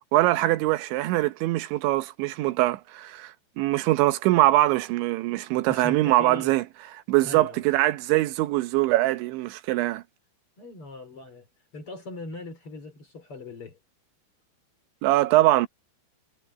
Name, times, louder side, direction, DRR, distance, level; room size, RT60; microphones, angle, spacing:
voice 1, 0.1-6.6 7.1-10.0 15.0-15.7, right 17 dB, 80° right, 3.2 m, -23 dB
voice 2, 5.7-6.5 7.2-7.7 10.6-11.5 11.7-13.8, left 3 dB, 30° left, 3.6 m, -40 dB
omnidirectional pair, 5.3 m